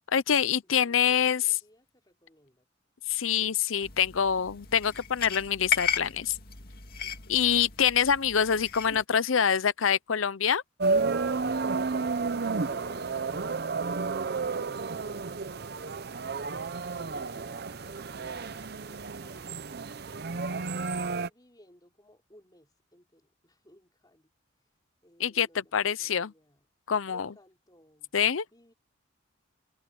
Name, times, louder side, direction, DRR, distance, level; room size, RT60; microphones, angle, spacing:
voice 1, 0.1-1.6 3.1-6.4 7.3-10.6 25.2-26.3 26.9-27.3 28.1-28.4, left 8 dB, 90° left, 0.7 m, -25 dB
voice 2, 0.8-2.7 3.3-3.7 7.0-7.5 12.3-15.6 16.8-19.7 20.5-24.3 25.0-26.6 27.1-28.1 28.5-28.7, equal, 20° left, 4.0 m, -58 dB
sound 1, 3.8-9.0, left 7 dB, 50° left, 2.4 m, -35 dB
sound 2, 10.8-21.3, right 4 dB, 55° right, 0.7 m, -31 dB
head